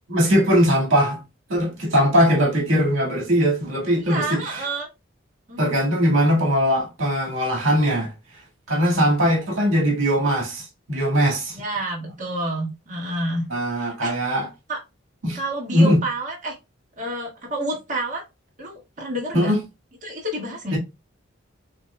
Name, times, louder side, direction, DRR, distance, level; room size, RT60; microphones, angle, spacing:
voice 1, 0.1-1.2 1.5-4.6 5.6-8.1 8.7-11.6 13.5-14.5 15.2-15.4 15.7-16.0 19.3-19.6 20.7-20.8, equal, 75° right, 1.8 m, -20 dB
voice 2, 4.1-4.9 5.5-5.6 11.5-13.5 13.8-14.1 14.7-14.8 15.3-16.5 17.0-18.2 18.6-19.5 20.0-20.8, right 1 dB, 35° right, 1.6 m, -29 dB
7.4 x 2.8 x 2.2 m
head